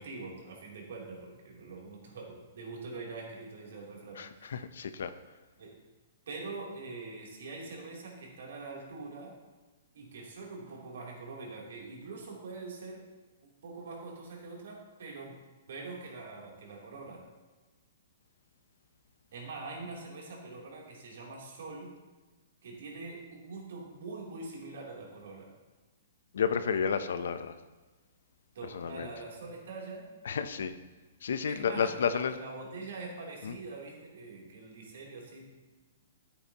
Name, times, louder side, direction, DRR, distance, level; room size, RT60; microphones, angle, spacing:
voice 1, 0.0-4.5 5.6-5.8 6.3-9.4 9.9-13.0 13.6-15.4 15.7-17.2 19.3-21.9 22.6-25.5 28.5-30.1 31.4-35.5, right 3 dB, 65° right, -2 dB, 3.2 m, -44 dB
voice 2, 4.2-5.1 26.3-27.5 28.7-29.1 30.3-30.7 31.2-32.4 33.4-33.5, left 7 dB, 70° left, 11 dB, 0.7 m, -31 dB
13.5 x 8.7 x 3.0 m, 1.3 s
hypercardioid pair, 175°, 0 cm